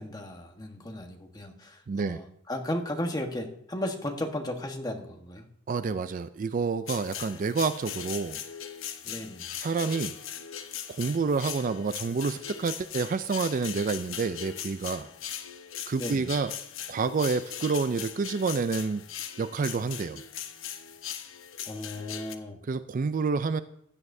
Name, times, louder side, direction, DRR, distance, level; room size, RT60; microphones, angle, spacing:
voice 1, 0.0-5.4 9.0-9.5 16.0-16.3 21.6-22.6, left 1 dB, 20° left, 3 dB, 1.2 m, -35 dB
voice 2, 1.9-2.2 5.7-8.4 9.6-10.1 10.9-15.1 15.9-16.5 16.9-19.0 19.4-20.2 22.7-23.6, right 4 dB, 40° right, 12 dB, 0.3 m, -28 dB
sound 1, 6.9-22.4, left 9 dB, 70° left, 0.9 m, -39 dB
15.5 x 11.0 x 2.7 m, 0.73 s
head